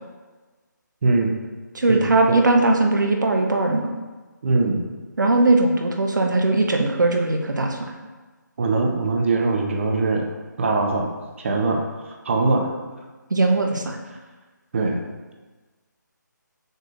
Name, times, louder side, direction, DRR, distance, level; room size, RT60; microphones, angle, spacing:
voice 1, 1.0-1.3 2.0-2.4 4.4-4.8 8.6-10.3 10.6-11.1 11.4-11.9 12.2-12.7 14.7-15.0, right 3 dB, 40° right, 2 dB, 0.9 m, -21 dB
voice 2, 1.7-3.9 5.2-7.9 13.3-14.0, right 2 dB, 70° right, 3 dB, 1.0 m, -19 dB
6.6 x 6.5 x 2.6 m, 1.3 s
figure-of-eight pair, 155°, 10 cm